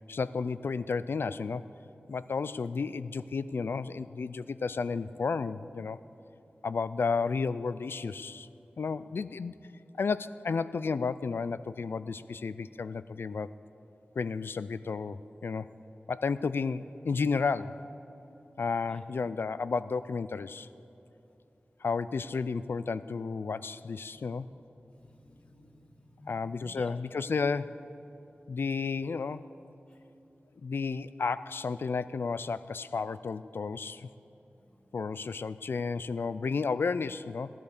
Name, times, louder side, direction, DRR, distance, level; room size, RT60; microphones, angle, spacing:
voice 1, 0.1-1.7 2.1-6.0 6.6-8.5 8.8-9.5 10.0-13.5 14.2-15.7 16.1-17.8 18.6-20.7 21.8-24.5 26.3-27.9 28.5-29.5 30.6-34.1 34.9-37.5, left 5 dB, 75° left, 15 dB, 0.4 m, -32 dB
voice 2, 24.1-24.6 24.9-27.0 34.6-35.0, left 1 dB, 30° left, 3 dB, 1.3 m, -54 dB
15.5 x 11.0 x 6.7 m, 3.0 s
wide cardioid pair, 55°, 4 cm